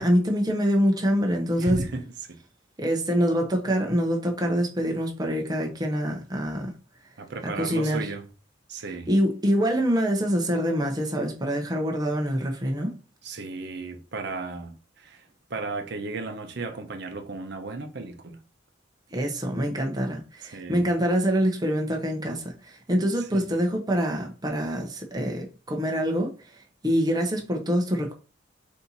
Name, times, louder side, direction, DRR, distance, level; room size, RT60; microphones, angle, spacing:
voice 1, 0.0-1.8 2.8-6.7 7.5-8.1 9.1-12.9 19.1-26.3 26.8-28.1, equal, 20° right, 0.7 m, -25 dB
voice 2, 1.6-2.4 7.2-8.2 8.7-9.1 13.2-18.4 20.5-20.9 23.3-23.4, right 3 dB, 55° right, 0.7 m, -35 dB
4.2 x 2.7 x 4.0 m
head